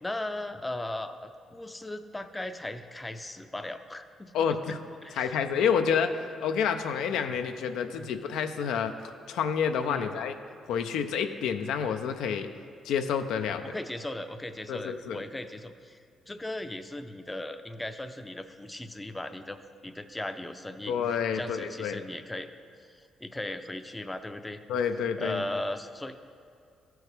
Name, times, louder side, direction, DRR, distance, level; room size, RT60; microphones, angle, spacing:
voice 1, 0.0-4.8 5.0-5.3 8.0-8.1 9.9-10.1 13.7-16.0 16.3-19.6 19.8-20.9 21.3-22.5 22.9-24.6 25.2-26.2, left 1 dB, 15° left, 8 dB, 0.4 m, -37 dB
voice 2, 4.3-4.8 5.1-8.9 9.3-10.3 10.7-12.5 12.8-13.7 14.7-15.2 20.9-22.0 24.7-25.4, left 7 dB, 85° left, 7 dB, 0.4 m, -29 dB
13.5 x 4.6 x 3.3 m, 2.4 s
cardioid pair, 90°, 0 cm